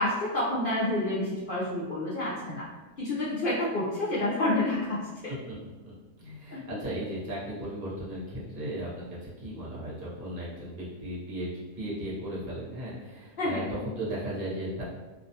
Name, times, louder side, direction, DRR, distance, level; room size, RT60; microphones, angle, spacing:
voice 1, 0.0-2.6 3.0-5.0 6.5-6.8 13.4-13.6, left 1 dB, 60° left, -8 dB, 0.6 m, -28 dB
voice 2, 6.2-11.5 11.7-14.8, right 1 dB, 40° right, -8 dB, 0.9 m, -36 dB
2.5 x 2.2 x 2.7 m, 1.2 s
omnidirectional pair, 1.4 m